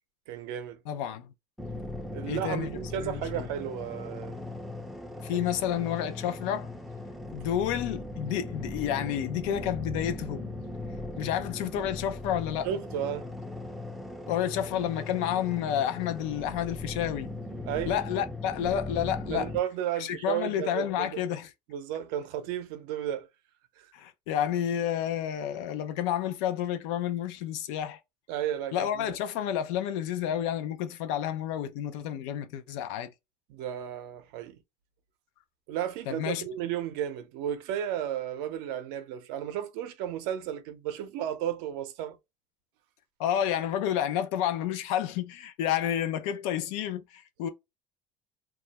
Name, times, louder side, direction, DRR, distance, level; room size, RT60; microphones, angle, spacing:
voice 1, 0.3-0.8 2.1-4.4 5.3-5.4 12.6-13.3 17.7-18.0 19.3-21.2 21.7-23.3 23.8-23.9 28.3-29.2 33.5-34.6 35.7-42.2, right 10 dB, 80° right, 0.6 m, -33 dB
voice 2, 0.9-1.3 2.3-3.5 5.2-6.7 7.3-10.5 11.2-12.7 14.3-17.3 17.9-19.5 20.0-21.5 23.9-28.0 28.7-33.1 36.1-36.4 43.2-47.5, left 10 dB, 85° left, 0.5 m, -30 dB
sound 1, 1.6-19.6, left 2 dB, ahead, 0.4 m, -39 dB
2.3 x 2.1 x 2.8 m
cardioid pair, 120°, 16 cm